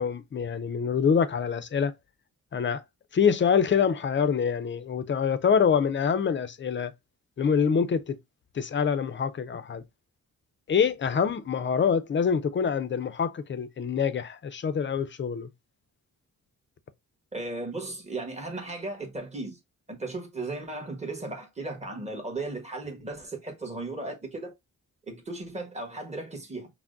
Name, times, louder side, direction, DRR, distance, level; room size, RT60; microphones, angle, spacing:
voice 1, 0.0-1.9 2.5-2.8 3.1-6.9 7.4-8.2 8.5-9.8 10.7-15.5, left 6 dB, 35° left, 0.5 m, -25 dB
voice 2, 17.3-19.6 19.9-24.5 25.1-26.7, right 2 dB, 20° right, 1.2 m, -36 dB
5.8 x 2.1 x 2.5 m
wide cardioid pair, 115°, 33 cm